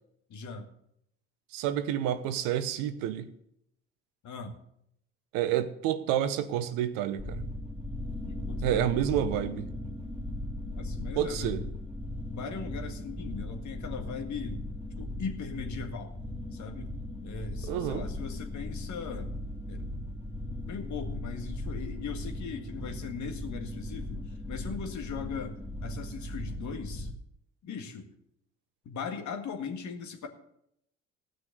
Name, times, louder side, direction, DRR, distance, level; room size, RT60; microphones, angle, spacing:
voice 1, 0.3-0.7 4.2-4.6 8.2-8.9 10.0-10.1 10.6-11.7 12.3-14.6 15.0-16.1 16.5-16.9 17.2-19.3 19.7-20.0 20.6-27.1 27.6-28.1 28.9-30.3, left 5 dB, 60° left, 1.8 m, -39 dB
voice 2, 1.5-3.3 5.3-7.4 8.6-9.7 11.0-11.6 17.6-18.1, right 10 dB, 80° right, 1.0 m, -29 dB
sound 1, 7.2-27.1, left 1 dB, 5° right, 2.4 m, -38 dB
15.5 x 6.3 x 6.7 m
hypercardioid pair, 60°, 33 cm